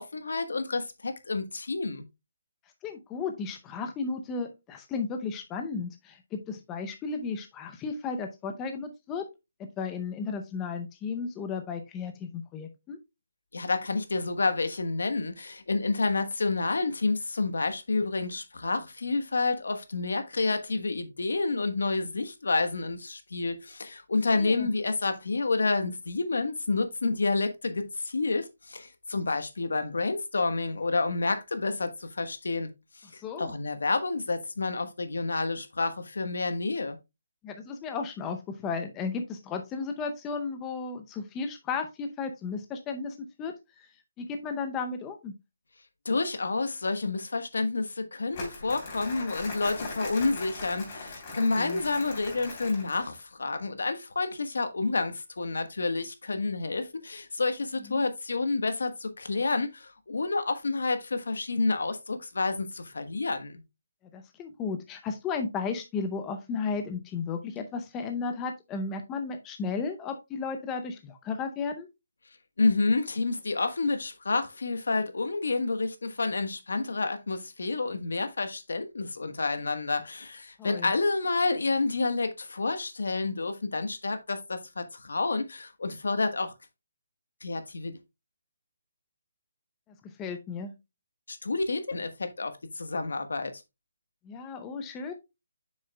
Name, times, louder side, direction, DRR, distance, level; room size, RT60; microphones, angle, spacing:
voice 1, 0.0-2.0 13.5-32.7 33.0-37.0 46.0-63.6 72.6-86.5 87.4-88.0 91.3-93.5, left 3 dB, 80° left, 1.2 m, -29 dB
voice 2, 2.8-9.3 9.6-13.0 24.3-24.7 33.2-33.5 37.4-43.5 43.8-43.9 44.2-45.3 51.4-51.8 57.9-58.0 64.1-71.9 80.6-80.9 90.0-90.7 94.2-95.1, left 5 dB, 15° left, 0.6 m, -34 dB
Crumpling crinkling, 48.3-53.2, left 3 dB, 30° left, 3.1 m, -40 dB
7.7 x 6.3 x 2.2 m
hypercardioid pair, 165°, 0 cm